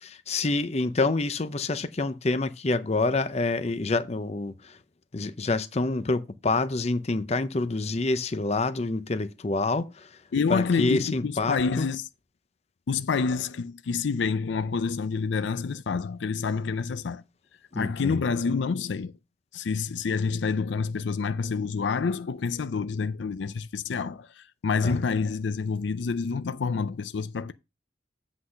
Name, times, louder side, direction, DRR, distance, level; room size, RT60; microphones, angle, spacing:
voice 1, 0.0-4.7 5.1-10.1 10.5-11.9 17.7-18.2 24.8-25.0, left 3 dB, 35° left, 0.6 m, -27 dB
voice 2, 10.3-12.1 12.9-17.2 17.7-19.1 19.5-27.5, left 5 dB, 75° left, 0.4 m, -28 dB
8.1 x 4.0 x 6.3 m
head